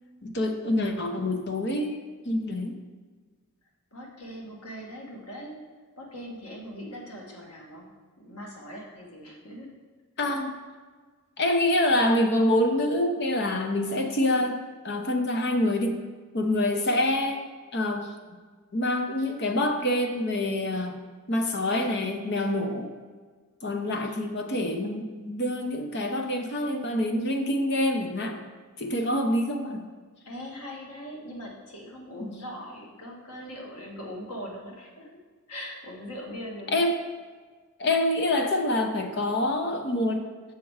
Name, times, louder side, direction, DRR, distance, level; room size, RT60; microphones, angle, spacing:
voice 1, 0.2-2.8 10.2-10.5 11.4-16.0 16.3-17.4 17.7-18.1 18.7-21.0 21.3-22.9 23.6-28.4 28.8-29.9 32.2-32.4 36.7-37.0 37.8-40.3, left 1 dB, 50° left, 5 dB, 0.8 m, -26 dB
voice 2, 3.9-5.7 6.0-9.7 10.2-10.4 30.2-35.1 35.5-36.9, equal, 90° left, -1 dB, 1.7 m, -41 dB
7.2 x 6.0 x 4.8 m, 1.5 s
head